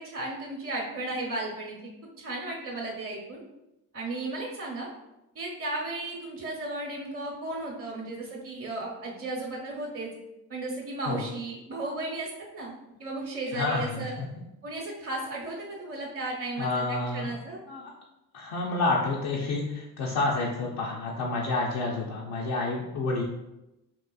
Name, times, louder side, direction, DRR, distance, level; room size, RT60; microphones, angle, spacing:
voice 1, 0.0-1.8 2.2-3.4 3.9-4.9 5.3-10.1 10.5-12.7 13.0-14.2 14.6-17.6, right 2 dB, 35° right, -2 dB, 0.8 m, -35 dB
voice 2, 13.5-14.3 16.6-17.3 17.7-17.8 18.3-23.2, left 3 dB, 85° left, -4 dB, 0.5 m, -29 dB
3.7 x 2.4 x 2.3 m, 0.92 s
supercardioid pair, 45°, 39 cm